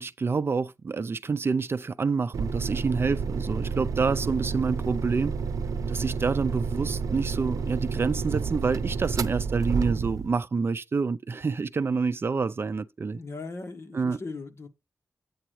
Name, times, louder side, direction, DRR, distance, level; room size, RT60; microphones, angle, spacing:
voice 1, 0.0-5.3 5.9-13.2 13.9-14.2, right 4 dB, 45° right, 0.5 m, -27 dB
sound 1, 2.3-10.4, right 5 dB, 90° right, 0.7 m, -30 dB
voice 2, 13.1-14.7, left 3 dB, 50° left, 1.7 m, -38 dB
10.0 x 8.6 x 3.2 m
wide cardioid pair, 120°, 6 cm